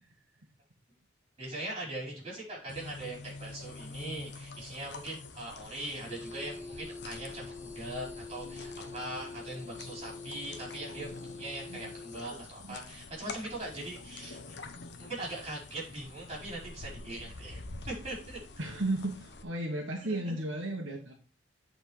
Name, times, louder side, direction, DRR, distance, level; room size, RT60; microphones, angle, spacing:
voice 1, 1.4-11.1 11.4-14.6 15.0-18.4 20.0-20.3, right 1 dB, 30° right, -3 dB, 4.8 m, -41 dB
sound 1, 2.7-19.4, left 3 dB, 60° left, 0.9 m, -47 dB
sound 2, 6.1-12.6, left 3 dB, 10° right, 0.9 m, -45 dB
voice 2, 18.6-21.1, right 1 dB, 85° right, 1 dB, 1.5 m, -34 dB
8.2 x 4.6 x 4.8 m, 0.37 s
head